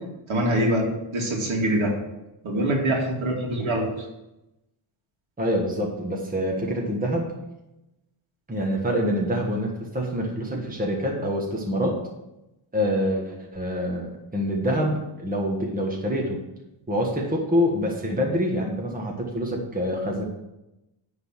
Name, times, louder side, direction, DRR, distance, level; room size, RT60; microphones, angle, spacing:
voice 1, 0.3-0.8 1.1-1.9 2.4-3.9, right 1 dB, 70° right, -1 dB, 2.5 m, -24 dB
voice 2, 5.4-7.3 8.5-12.0 12.7-16.4 16.9-20.2, equal, 15° right, -1 dB, 1.5 m, -26 dB
10.0 x 4.0 x 7.4 m, 0.93 s
wide cardioid pair, 135°, 50 cm